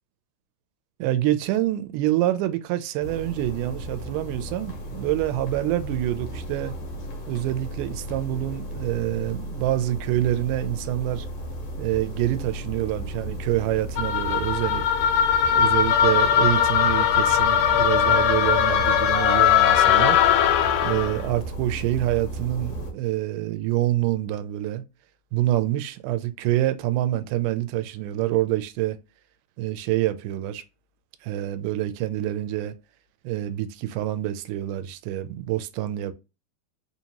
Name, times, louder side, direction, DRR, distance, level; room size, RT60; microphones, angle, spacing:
voice 1, 1.0-6.7 7.3-11.3 11.8-14.8 15.5-20.2 20.8-24.8 25.3-29.0 29.6-30.6 31.2-32.7 33.2-36.1, right 14 dB, 90° right, 2.1 m, -26 dB
sound 1, 3.0-22.9, right 1 dB, 65° left, 1.9 m, -35 dB
sound 2, 14.0-21.2, left 9 dB, 85° left, 1.5 m, -20 dB
4.8 x 2.8 x 2.8 m
omnidirectional pair, 3.6 m